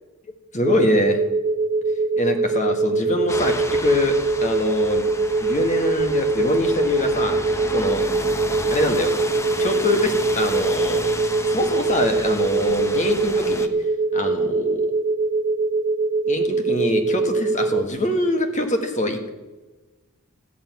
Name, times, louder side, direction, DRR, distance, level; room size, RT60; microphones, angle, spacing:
voice 1, 0.5-1.2 2.2-3.6 3.8-5.0 5.4-8.0 8.7-9.1 9.6-11.1 11.4-13.7 14.1-14.8 16.3-19.3, left 1 dB, 35° left, 5 dB, 1.7 m, -24 dB
sound 1, 0.7-17.8, right 3 dB, 15° right, 0.4 m, -23 dB
sound 2, 3.3-13.7, left 2 dB, 15° left, 0.8 m, -33 dB
14.0 x 6.8 x 9.4 m, 1.2 s
head